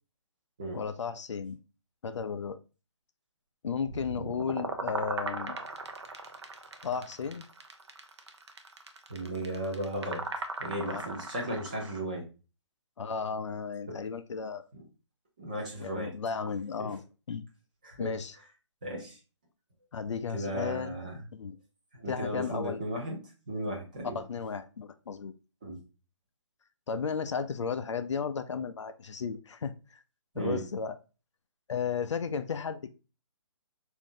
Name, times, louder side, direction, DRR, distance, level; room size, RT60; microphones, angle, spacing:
voice 1, 0.7-1.6 2.0-2.6 3.6-5.6 6.8-7.4 10.9-11.0 13.0-14.6 15.8-17.4 18.0-18.3 19.9-21.0 21.3-21.6 22.1-22.8 24.1-25.3 26.9-30.0 30.3-31.0 31.7-32.9, left 6 dB, 75° left, 10 dB, 0.4 m, -34 dB
sound 1, 3.9-12.0, right 3 dB, 65° right, 0.6 m, -38 dB
voice 2, 9.1-10.2 10.6-12.2 14.7-14.8 15.4-16.1 16.8-16.9 17.8-18.1 18.8-19.2 20.3-21.2 21.9-23.2 23.5-24.2 25.6-25.8 30.3-30.6, right 1 dB, 15° right, 0 dB, 0.6 m, -35 dB
3.6 x 2.6 x 3.6 m, 0.32 s
hypercardioid pair, 175°, 16 cm